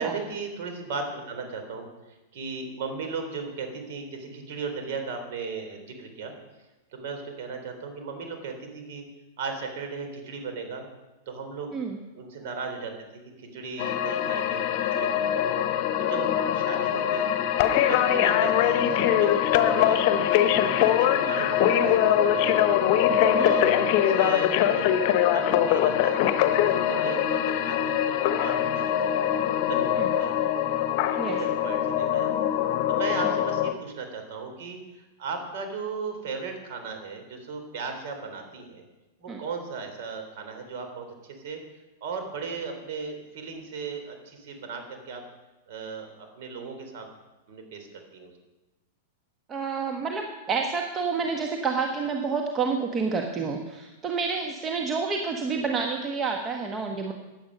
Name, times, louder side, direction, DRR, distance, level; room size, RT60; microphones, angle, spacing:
voice 1, 0.0-1.8 2.3-6.3 6.9-9.0 9.4-10.8 11.3-11.7 12.1-15.4 16.0-17.3 17.9-20.2 20.6-22.8 23.3-24.9 25.3-29.2 29.7-30.4 31.1-32.3 32.9-34.8 35.2-38.8 39.2-41.6 42.0-45.2 45.7-47.0 47.5-48.3 55.5-55.7, right 4 dB, 50° right, 5 dB, 3.5 m, -36 dB
sound 1, 13.8-33.7, left 10 dB, 45° left, 1.0 m, -23 dB
voice 2, 49.5-57.1, right 5 dB, 25° right, 3 dB, 1.3 m, -29 dB
15.5 x 10.5 x 5.4 m, 1.1 s
figure-of-eight pair, 95°, 0 cm